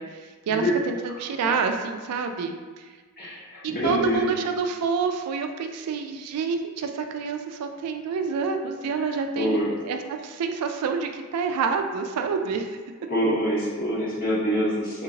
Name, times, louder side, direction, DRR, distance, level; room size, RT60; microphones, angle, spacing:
voice 1, 0.0-2.9 3.6-12.8, right 5 dB, 80° right, 6 dB, 0.3 m, -28 dB
voice 2, 3.2-4.3 9.4-9.7 13.1-15.0, equal, 40° left, -8 dB, 0.8 m, -25 dB
3.5 x 2.8 x 2.7 m, 1.4 s
head